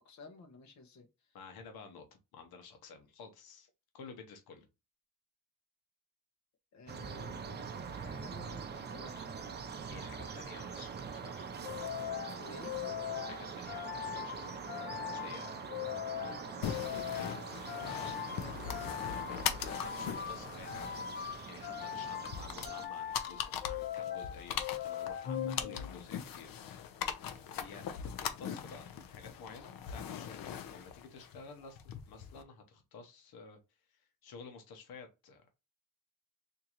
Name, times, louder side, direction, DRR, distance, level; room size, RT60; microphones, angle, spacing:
voice 1, 0.0-1.4 6.7-9.4 10.0-10.3 12.3-12.8 15.4-16.8 17.7-18.7, left 3 dB, 50° left, 1.1 m, -54 dB
voice 2, 1.3-2.1 2.3-4.7 9.6-11.6 13.3-14.4 15.1-15.5 19.5-26.6 27.5-33.6 33.9-35.6, left 5 dB, 85° left, 1.1 m, -52 dB
sound 1, 6.9-22.9, right 6 dB, 30° right, 0.5 m, -44 dB
sound 2, 11.6-26.2, left 10 dB, 30° left, 0.4 m, -41 dB
sound 3, 16.6-32.4, left 9 dB, 65° left, 0.7 m, -41 dB
3.7 x 2.9 x 2.9 m
cardioid pair, 170°, 36 cm